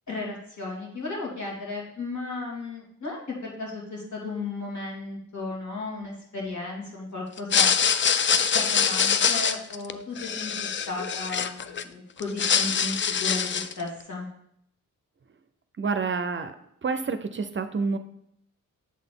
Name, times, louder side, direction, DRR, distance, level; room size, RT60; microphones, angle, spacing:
voice 1, 0.1-7.7 8.3-14.3, left 3 dB, 65° left, -3 dB, 2.3 m, -35 dB
sound 1, 7.4-11.8 12.2-13.8, left 7 dB, 40° left, 0.4 m, -24 dB
voice 2, 15.8-16.6 16.8-18.0, right 4 dB, 40° right, 9 dB, 0.5 m, -28 dB
7.3 x 4.0 x 3.7 m, 0.73 s
cardioid pair, 65°, 32 cm